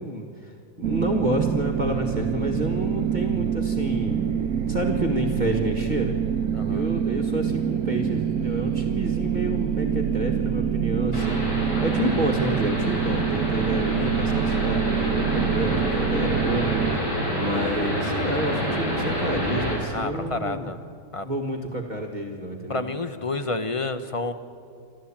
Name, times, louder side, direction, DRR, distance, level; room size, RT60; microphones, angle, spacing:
voice 1, 0.0-6.1 6.7-11.5 11.8-16.7 17.4-20.7 21.2-22.9, equal, 25° right, 0 dB, 1.7 m, -29 dB
sound 1, 0.8-17.0, right 8 dB, 65° right, 1.2 m, -26 dB
voice 2, 6.5-6.9 19.9-20.8 21.1-21.3 22.7-24.3, left 3 dB, 30° left, 10 dB, 0.6 m, -29 dB
sound 2, 11.1-19.7, equal, 75° left, 5.9 m, -27 dB
28.0 x 13.0 x 8.7 m, 2.3 s
omnidirectional pair, 1.8 m